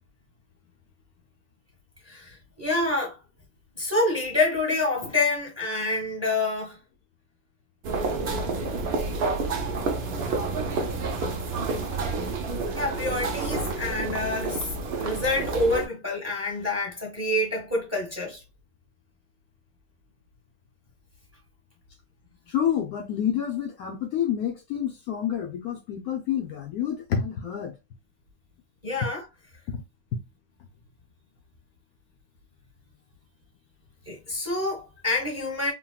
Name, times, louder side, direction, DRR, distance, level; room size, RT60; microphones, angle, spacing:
voice 1, 2.1-3.1 3.8-6.8 12.7-14.7 15.0-18.4 28.8-29.2 34.1-35.7, left 2 dB, 10° right, 1.0 m, -27 dB
sound 1, 7.8-15.9, right 3 dB, 75° right, 0.5 m, -29 dB
voice 2, 22.5-27.8 29.7-29.8 30.1-30.2, left 9 dB, 70° left, 1.0 m, -28 dB
3.5 x 2.2 x 2.2 m
omnidirectional pair, 1.8 m